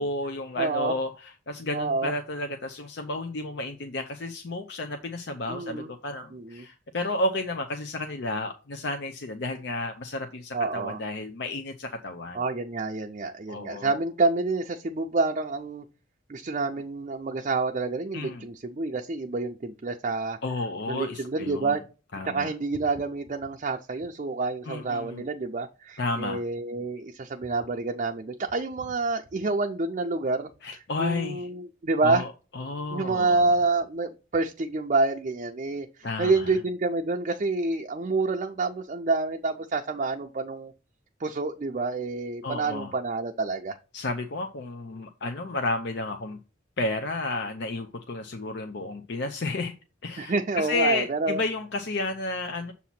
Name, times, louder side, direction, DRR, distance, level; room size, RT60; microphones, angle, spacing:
voice 1, 0.0-12.4 13.5-13.9 18.1-18.4 20.4-21.8 22.1-22.5 24.7-25.3 26.0-26.4 30.6-31.5 32.0-32.3 32.5-33.5 36.0-36.6 42.4-42.9 43.9-46.4 46.8-49.7 50.0-52.7, left 2 dB, 60° left, 0.6 m, -32 dB
voice 2, 0.6-1.0 1.7-2.1 5.5-5.9 6.3-6.7 10.5-11.0 12.3-15.8 16.3-20.4 20.9-21.8 22.3-30.5 31.0-32.3 32.9-40.7 41.2-43.8 50.2-51.4, right 3 dB, 40° right, 0.5 m, -28 dB
7.2 x 2.8 x 5.8 m
head